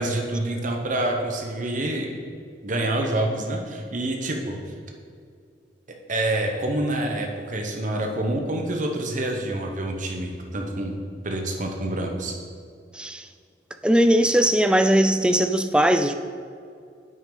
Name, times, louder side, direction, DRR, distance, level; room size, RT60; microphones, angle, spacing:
voice 1, 0.0-2.2 2.6-4.6 6.1-10.9 11.2-12.4, right 1 dB, 45° right, 2 dB, 0.9 m, -27 dB
voice 2, 12.9-13.3 13.8-16.1, right 1 dB, 5° right, 8 dB, 0.3 m, -19 dB
9.1 x 6.0 x 3.8 m, 2.3 s
head